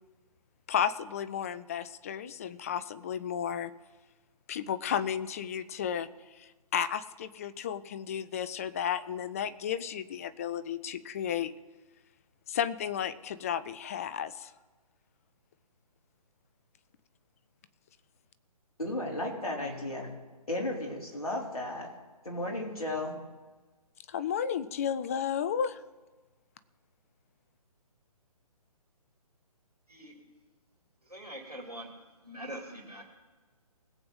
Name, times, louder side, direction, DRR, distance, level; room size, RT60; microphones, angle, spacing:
voice 1, 0.7-3.7 4.5-6.1 6.4-11.5 12.5-14.5 24.1-25.8, left 8 dB, 25° left, 13 dB, 0.5 m, -33 dB
voice 2, 18.8-20.1 20.5-21.9 22.2-23.2, left 1 dB, 70° left, 0 dB, 3.2 m, -34 dB
voice 3, 31.1-31.9 32.2-33.0, equal, 85° right, 0 dB, 3.0 m, -43 dB
21.5 x 7.7 x 3.9 m, 1.3 s
figure-of-eight pair, 135°, 19 cm